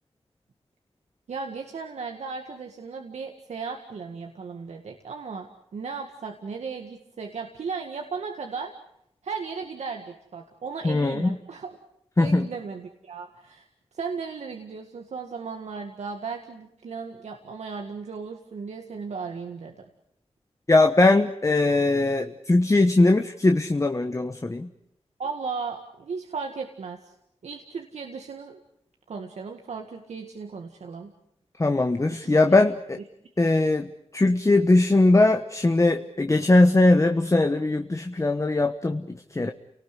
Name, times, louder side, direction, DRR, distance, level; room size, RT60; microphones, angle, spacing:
voice 1, 1.3-5.5 5.7-8.7 9.2-11.8 12.2-13.7 13.9-19.8 25.2-27.1 27.4-28.6 29.1-31.1 32.2-32.3, right 5 dB, 85° right, 3 dB, 1.9 m, -36 dB
voice 2, 10.8-11.4 12.2-12.5 20.7-24.7 31.6-33.0 33.4-39.5, left 2 dB, 25° left, 7 dB, 1.2 m, -20 dB
29.5 x 19.0 x 8.3 m, 0.77 s
cardioid pair, 60°, 11 cm